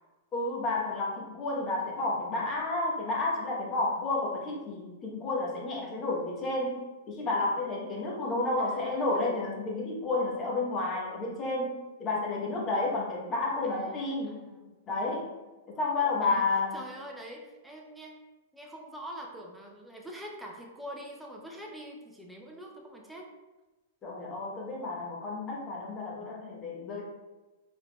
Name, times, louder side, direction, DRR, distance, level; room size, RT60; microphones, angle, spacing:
voice 1, 0.3-14.4 14.9-15.3 15.7-16.8 24.0-27.0, left 2 dB, 25° left, -2 dB, 1.0 m, -31 dB
voice 2, 8.6-9.3 13.6-14.7 16.2-16.5 16.7-18.2 18.5-23.3, equal, 5° right, -1 dB, 0.6 m, -45 dB
4.6 x 3.4 x 2.3 m, 1.1 s
hypercardioid pair, 140°, 0 cm